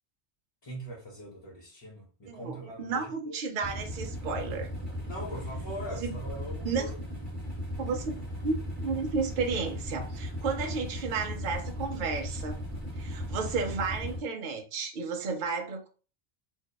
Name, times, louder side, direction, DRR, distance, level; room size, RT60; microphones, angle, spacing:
voice 1, 0.6-3.4 5.1-6.9 13.2-13.4, equal, 30° left, 0.5 m, -41 dB
voice 2, 2.3-4.7 6.0-6.2 6.6-6.9 7.8-12.6 13.0-15.9, right 4 dB, 60° right, 0.6 m, -33 dB
sound 1, 3.6-14.2, equal, 20° right, 1.1 m, -37 dB
2.6 x 2.1 x 2.2 m
omnidirectional pair, 1.1 m